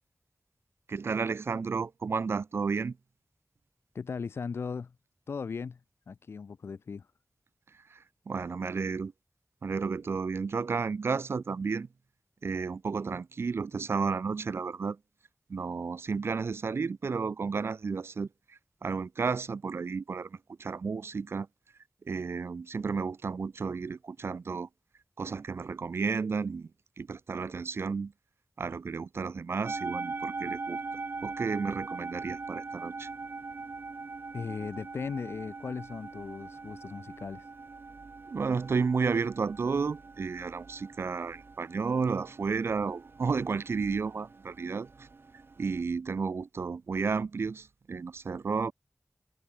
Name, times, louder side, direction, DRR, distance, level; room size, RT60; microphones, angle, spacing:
voice 1, 0.9-3.0 7.9-9.1 9.6-11.9 12.4-15.0 15.5-21.5 22.0-24.7 25.2-26.7 27.0-28.1 28.6-30.8 31.2-33.1 38.3-45.1 45.6-48.7, right 5 dB, 85° right, 0.8 m, -32 dB
voice 2, 3.9-4.9 5.3-5.8 6.1-7.1 34.3-37.5, left 5 dB, 85° left, 0.4 m, -37 dB
sound 1, 29.6-45.8, right 4 dB, 65° right, 1.2 m, -42 dB
wide cardioid pair, 65°, 4 cm